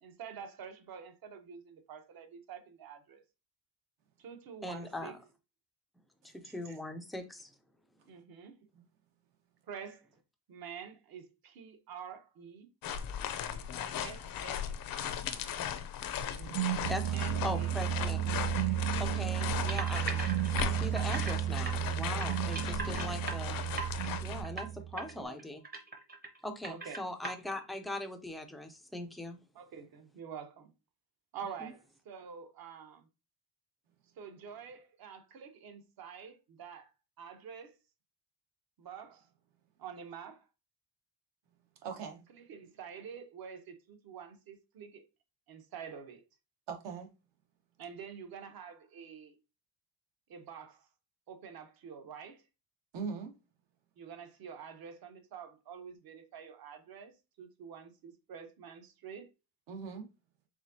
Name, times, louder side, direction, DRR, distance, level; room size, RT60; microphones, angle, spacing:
voice 1, 0.0-3.2 4.2-5.2 8.1-8.6 9.7-10.1 10.5-12.7 14.0-14.7 15.0-15.3 17.1-17.7 19.1-19.5 24.9-25.4 26.7-27.1 29.5-30.7 31.3-33.1 34.2-36.9 37.2-37.7 38.8-39.3 39.8-40.4 42.5-45.0 45.5-46.2 47.8-49.3 50.3-50.9 51.3-52.4 54.0-59.3, right 7 dB, 50° right, 0.9 m, -47 dB
voice 2, 4.6-5.1 6.3-7.5 16.9-17.2 17.4-18.2 19.0-20.0 20.6-23.6 24.2-25.6 26.4-29.4 31.6-31.7, left 1 dB, ahead, 0.3 m, -40 dB
voice 3, 6.2-6.7 8.7-8.8 41.8-42.3 46.7-47.1 52.9-53.3 59.7-60.1, right 5 dB, 70° right, 1.2 m, -41 dB
sound 1, 12.8-24.4, left 9 dB, 50° left, 0.5 m, -38 dB
sound 2, 16.3-25.1, right 13 dB, 85° right, 0.6 m, -33 dB
sound 3, 19.7-21.4 21.7-21.8 22.2-24.1 24.4-24.7 25.0-25.1 25.4-26.4 26.6-27.3, right 3 dB, 20° right, 0.8 m, -39 dB
4.9 x 3.6 x 2.7 m
cardioid pair, 160°, 45 cm